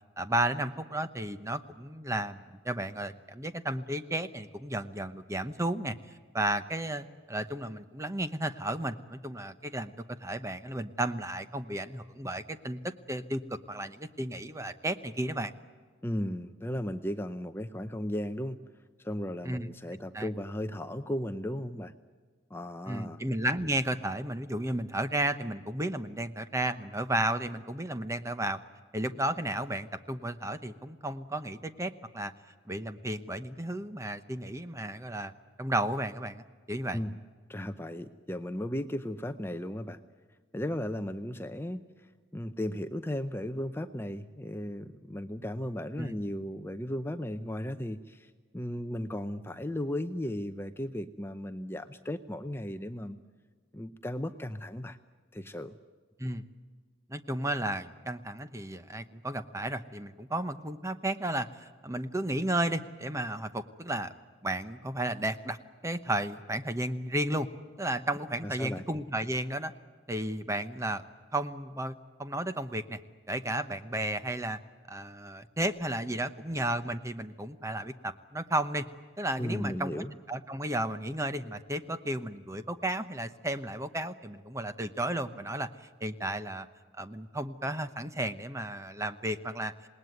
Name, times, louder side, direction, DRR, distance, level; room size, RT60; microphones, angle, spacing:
voice 1, 0.2-5.9 6.3-9.9 10.2-12.8 13.1-13.4 13.7-15.5 19.4-19.7 20.1-20.3 22.9-28.6 28.9-32.3 32.7-35.3 35.6-37.0 46.0-46.2 56.2-56.4 57.1-64.1 64.4-65.6 65.8-67.5 67.8-69.7 70.1-71.0 71.3-73.0 73.3-74.6 74.9-78.9 79.2-85.7 86.0-86.7 86.9-89.7, right 1 dB, 15° right, 11 dB, 0.9 m, -33 dB
voice 2, 16.0-18.6 19.0-21.9 22.5-23.2 36.9-37.2 37.5-40.0 40.5-53.2 53.7-55.0 55.3-55.8 68.4-68.8 79.4-80.1, left 1 dB, 10° left, 8 dB, 0.7 m, -36 dB
27.0 x 19.5 x 9.5 m, 1.5 s
head